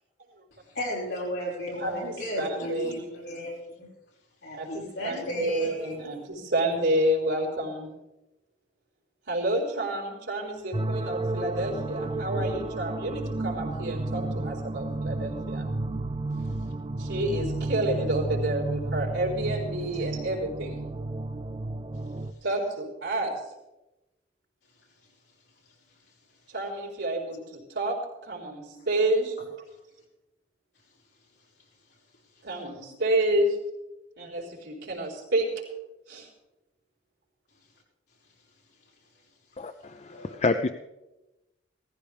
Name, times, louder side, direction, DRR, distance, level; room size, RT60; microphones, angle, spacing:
voice 1, 0.7-3.9 4.4-6.0 16.3-16.4 19.8-19.9 28.7-28.9 40.1-40.4, left 1 dB, 65° left, -4 dB, 5.3 m, -34 dB
voice 2, 1.8-3.0 4.5-7.9 9.3-15.7 17.0-20.9 22.4-23.4 26.5-29.4 32.4-33.6 34.2-35.6 36.1-36.3, right 1 dB, 85° right, -3 dB, 4.3 m, -29 dB
sound 1, 10.7-22.3, right 2 dB, 25° right, 0.4 m, -32 dB
voice 3, 39.6-40.7, left 3 dB, 35° left, 8 dB, 0.4 m, -28 dB
17.5 x 14.5 x 3.5 m, 0.99 s
head